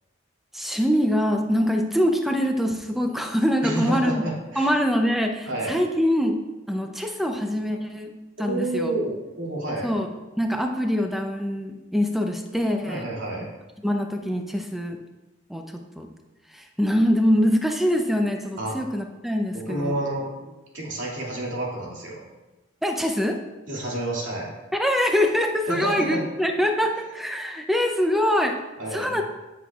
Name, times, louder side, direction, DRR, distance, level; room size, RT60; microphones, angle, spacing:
voice 1, 0.5-4.1 4.6-6.4 6.7-8.1 8.4-8.9 9.8-10.1 10.4-13.1 13.8-15.0 15.5-15.6 16.0-16.1 16.5-20.0 22.8-23.4 24.7-28.6 28.9-29.2, equal, ahead, 4 dB, 0.6 m, -24 dB
voice 2, 3.6-4.7 5.4-5.7 8.4-9.9 12.8-13.5 18.6-18.8 19.5-22.2 23.7-24.5 25.7-26.2 28.8-29.2, right 1 dB, 80° right, -4 dB, 2.4 m, -29 dB
13.5 x 6.0 x 2.4 m, 1.1 s
head